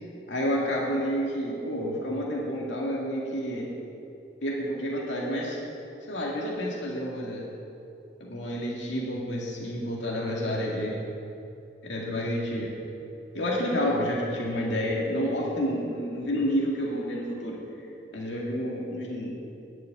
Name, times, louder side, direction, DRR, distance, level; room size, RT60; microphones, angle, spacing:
voice 1, 0.3-3.7 4.4-5.6 6.0-7.4 8.2-11.0 11.8-12.7 13.3-17.6 18.1-19.3, equal, 80° left, -3 dB, 2.1 m, -29 dB
11.5 x 6.6 x 9.1 m, 2.7 s
head